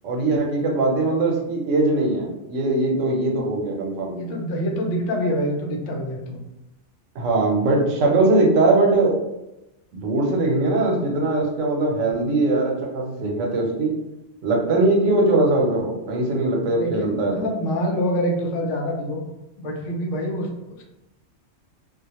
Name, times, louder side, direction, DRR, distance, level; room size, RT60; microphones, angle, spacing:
voice 1, 0.0-4.1 7.1-9.2 9.9-13.9 14.4-17.3, right 2 dB, 80° right, 0 dB, 1.0 m, -21 dB
voice 2, 4.2-6.4 16.6-19.2 19.6-20.5, equal, 80° left, 0 dB, 0.9 m, -26 dB
2.3 x 2.1 x 2.8 m, 0.92 s
omnidirectional pair, 1.3 m